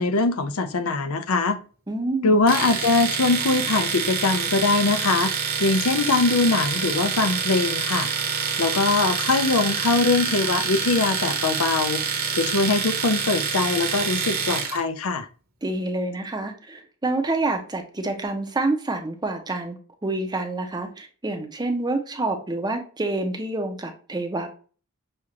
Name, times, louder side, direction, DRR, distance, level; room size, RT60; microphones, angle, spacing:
voice 1, 0.0-1.6 2.2-5.3 5.6-8.1 8.6-12.0 12.3-15.3, left 3 dB, 80° left, 9 dB, 0.6 m, -22 dB
voice 2, 1.9-2.4 15.6-24.5, right 2 dB, 20° right, 5 dB, 0.7 m, -27 dB
Domestic sounds home sounds, 2.5-14.8, right 6 dB, 45° right, 1.0 m, -26 dB
6.4 x 2.4 x 2.8 m, 0.39 s
head